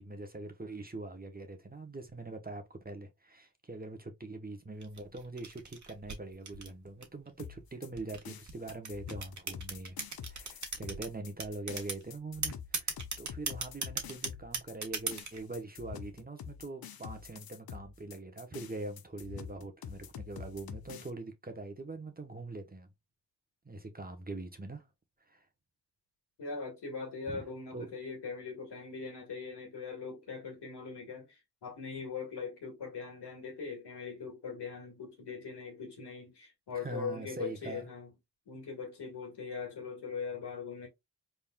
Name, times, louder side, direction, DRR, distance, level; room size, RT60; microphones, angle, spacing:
voice 1, 0.0-10.0 10.3-22.9 23.6-24.9 25.3-25.4 27.3-27.4 27.7-27.9 36.7-37.9, right 2 dB, 20° right, 1.0 m, -43 dB
sound 1, 4.8-7.3 8.0-11.1 11.4-12.0 12.4-15.4, right 4 dB, 45° right, 1.4 m, -37 dB
sound 2, 7.4-21.1, left 8 dB, 60° left, 0.7 m, -47 dB
voice 2, 26.4-38.1 38.5-40.9, left 5 dB, 80° left, 2.0 m, -41 dB
4.1 x 3.5 x 2.3 m
cardioid pair, 55°, 41 cm